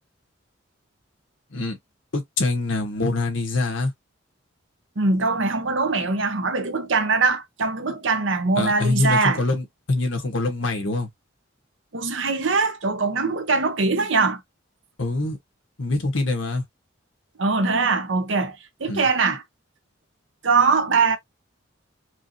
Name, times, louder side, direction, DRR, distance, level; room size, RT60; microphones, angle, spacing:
voice 1, 2.1-3.9 8.5-11.1 15.0-15.4 15.8-16.6 18.9-19.1, left 2 dB, 80° left, 1.5 m, -24 dB
voice 2, 5.0-9.4 11.9-14.4 17.4-19.4 20.4-21.2, right 4 dB, 75° right, 1.0 m, -22 dB
4.8 x 2.6 x 2.8 m
head